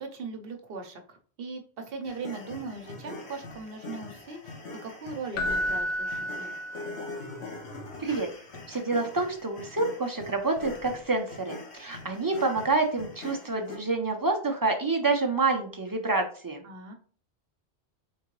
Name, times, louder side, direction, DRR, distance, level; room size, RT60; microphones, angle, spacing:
voice 1, 0.0-4.6 4.8-6.5 16.6-16.9, right 4 dB, 65° right, 5 dB, 0.8 m, -39 dB
sound 1, 2.0-13.8, left 3 dB, 80° left, 1.3 m, -43 dB
Keyboard (musical), 5.3-7.3 10.6-10.7, equal, 65° left, 0.8 m, -31 dB
voice 2, 8.7-16.6, right 3 dB, 30° right, 3 dB, 0.4 m, -28 dB
3.7 x 3.7 x 3.0 m, 0.43 s
omnidirectional pair, 1.1 m